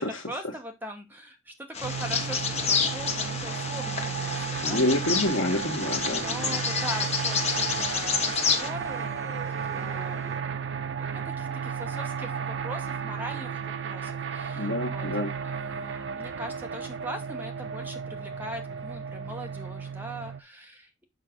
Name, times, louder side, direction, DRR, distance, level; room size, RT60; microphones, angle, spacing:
voice 1, 0.3-2.4 2.7-4.8 6.1-9.3 9.6-10.7 11.0-15.0 15.4-21.1, right 1 dB, 10° right, 3 dB, 1.1 m, -41 dB
Bird vocalization bird call bird song, 1.7-8.7, left 5 dB, 35° left, 1.2 m, -29 dB
sound 1, 1.8-20.4, right 6 dB, 65° right, 0.6 m, -34 dB
voice 2, 4.6-6.6 14.6-15.3, left 1 dB, 75° left, 1 dB, 1.1 m, -28 dB
sound 2, 6.8-10.4, left 2 dB, 15° left, 1.2 m, -47 dB
6.5 x 5.8 x 3.7 m, 0.20 s
head